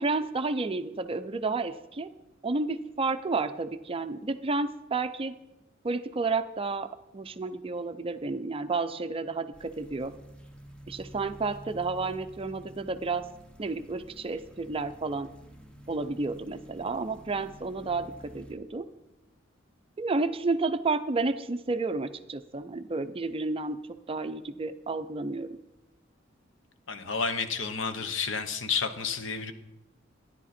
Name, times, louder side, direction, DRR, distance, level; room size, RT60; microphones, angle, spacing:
voice 1, 0.0-2.1 2.4-5.3 5.8-10.1 10.9-13.3 13.6-15.3 15.9-18.9 20.0-25.6, right 3 dB, 30° right, 10 dB, 0.5 m, -31 dB
sound 1, 9.5-18.6, equal, 5° left, 1.0 m, -50 dB
voice 2, 26.9-29.5, left 5 dB, 70° left, 9 dB, 0.9 m, -31 dB
12.0 x 10.5 x 4.2 m, 0.92 s
head